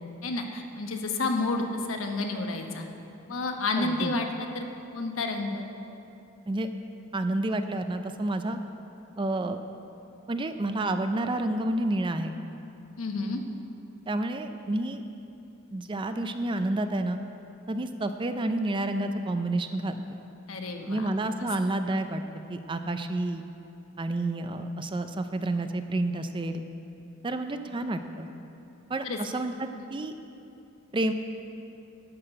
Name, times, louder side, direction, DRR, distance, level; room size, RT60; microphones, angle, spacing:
voice 1, 0.2-2.8 3.3-4.6 4.9-5.7 13.0-13.4 20.5-21.1 29.0-29.2 29.7-29.9, left 3 dB, 80° left, 4 dB, 1.0 m, -30 dB
voice 2, 3.8-4.1 6.5-6.7 7.1-8.6 9.2-9.6 10.3-12.3 14.1-15.0 15.7-17.2 17.7-20.2 20.9-22.2 22.5-23.4 24.0-26.6 27.2-28.3 28.9-30.1 30.9-31.1, right 2 dB, 25° right, 8 dB, 0.4 m, -29 dB
11.5 x 5.8 x 7.9 m, 2.8 s
head